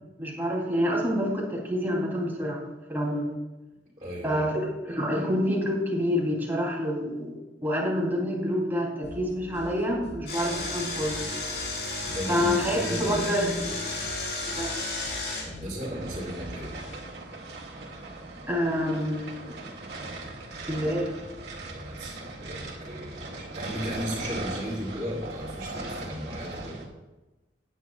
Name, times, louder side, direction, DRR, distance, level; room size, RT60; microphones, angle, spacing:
voice 1, 0.2-3.3 4.2-11.4 12.3-13.8 14.4-14.7 18.5-19.5 20.6-21.1, equal, 10° right, -3 dB, 3.2 m, -27 dB
voice 2, 4.0-4.4 12.0-13.2 15.4-16.7 21.7-26.7, equal, 30° right, -9 dB, 3.3 m, -35 dB
sound 1, 9.0-17.0, left 1 dB, 90° left, 1.9 m, -45 dB
Engine, 10.3-15.4, left 2 dB, 60° left, 4.3 m, -33 dB
sound 2, 15.8-26.9, right 2 dB, 65° right, 2.2 m, -39 dB
18.0 x 9.5 x 2.4 m, 1.1 s
head